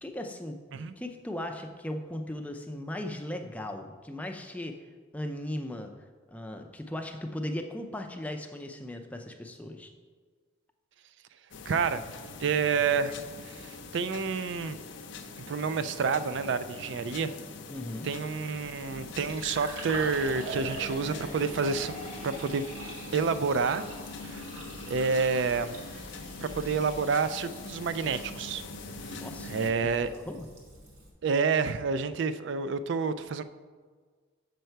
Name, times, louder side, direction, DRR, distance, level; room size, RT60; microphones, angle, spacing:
voice 1, 0.0-4.8 5.1-5.9 6.3-9.9 17.7-18.1 29.1-29.5 29.8-30.5, left 1 dB, 5° left, 4 dB, 0.4 m, -37 dB
sound 1, 11.5-29.7, left 3 dB, 60° left, 0.6 m, -43 dB
voice 2, 11.7-12.0 12.4-13.2 13.4-14.8 15.5-17.3 18.0-22.0 22.2-22.7 23.1-23.8 24.2-24.4 24.9-25.7 26.4-28.6 29.1-29.2 29.4-30.1 31.2-33.4, right 5 dB, 55° right, 13 dB, 0.4 m, -29 dB
Fill (with liquid), 18.6-31.1, right 1 dB, 85° right, 1.7 m, -44 dB
6.7 x 6.4 x 4.5 m, 1.5 s
head